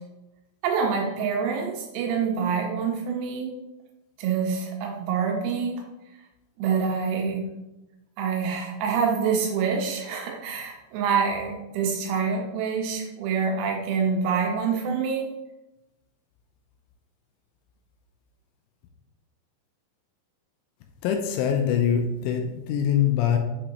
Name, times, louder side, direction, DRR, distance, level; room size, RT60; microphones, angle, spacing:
voice 1, 0.6-3.5 4.2-5.8 6.6-7.4 8.2-15.2, right 6 dB, 90° right, 1 dB, 3.9 m, -26 dB
voice 2, 21.0-23.4, left 8 dB, 85° left, 4 dB, 3.0 m, -23 dB
8.2 x 5.1 x 2.9 m, 0.98 s
omnidirectional pair, 5.9 m